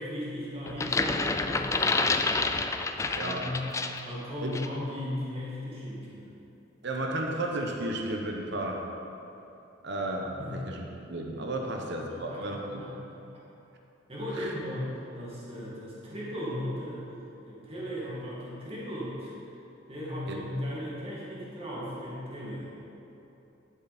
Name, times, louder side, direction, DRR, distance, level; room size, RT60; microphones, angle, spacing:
voice 1, 0.0-2.4 3.1-3.7 4.0-6.3 10.4-10.5 11.6-11.7 12.1-13.2 14.1-14.9 15.2-17.0 17.5-19.4 19.9-22.7, left 1 dB, 30° right, -7 dB, 2.3 m, -37 dB
sound 1, 0.7-4.1 4.5-4.7, left 3 dB, 15° left, 0.3 m, -28 dB
voice 2, 3.2-3.5 4.4-4.5 6.8-8.8 9.8-12.9 14.3-14.5 20.3-20.4, right 1 dB, 60° right, 1 dB, 1.0 m, -33 dB
12.0 x 7.4 x 4.3 m, 3.0 s
head